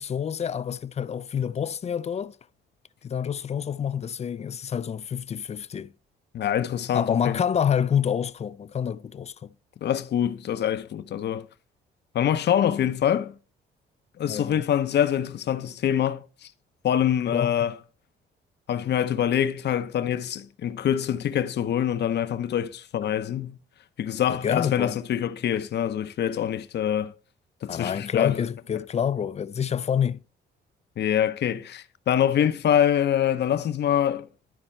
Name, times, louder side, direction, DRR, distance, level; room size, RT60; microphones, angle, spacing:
voice 1, 0.0-2.4 3.0-5.9 6.9-9.5 14.2-14.6 17.3-17.5 24.3-25.0 27.7-30.2, left 8 dB, 35° left, 0.4 m, -27 dB
voice 2, 6.3-7.4 9.8-11.5 12.1-13.3 14.2-16.5 16.8-17.7 18.7-23.6 24.0-27.1 27.6-28.4 31.0-34.3, left 10 dB, 60° left, 0.7 m, -25 dB
12.0 x 4.3 x 4.4 m
cardioid pair, 90°, 20 cm